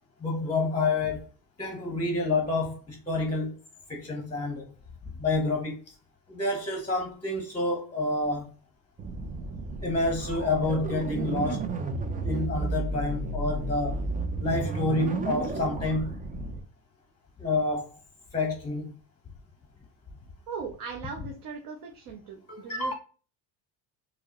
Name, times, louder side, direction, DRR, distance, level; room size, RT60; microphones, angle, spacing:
voice 1, 0.2-1.2 1.6-3.6 3.9-4.7 5.1-5.9 6.3-8.5 9.8-11.6 12.2-14.0 14.4-16.2 17.4-18.0 18.3-19.0 22.5-22.9, left 2 dB, 15° left, 0.8 m, -28 dB
sound 1, 9.0-16.6, right 2 dB, 20° right, 0.4 m, -32 dB
voice 2, 20.5-22.9, right 5 dB, 50° right, 0.7 m, -39 dB
4.8 x 2.1 x 2.9 m
cardioid pair, 110°, 44 cm